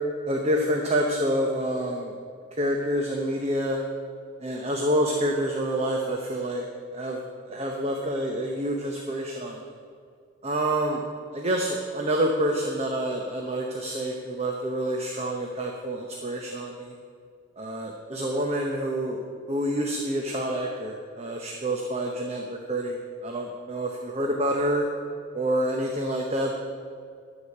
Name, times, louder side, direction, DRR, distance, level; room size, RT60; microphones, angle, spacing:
voice 1, 0.3-2.1 2.5-3.8 4.4-6.6 6.9-9.6 10.4-11.0 11.3-16.9 17.6-24.9 25.3-26.5, right 1 dB, 30° right, 1 dB, 0.8 m, -27 dB
12.0 x 5.0 x 8.4 m, 2.2 s
head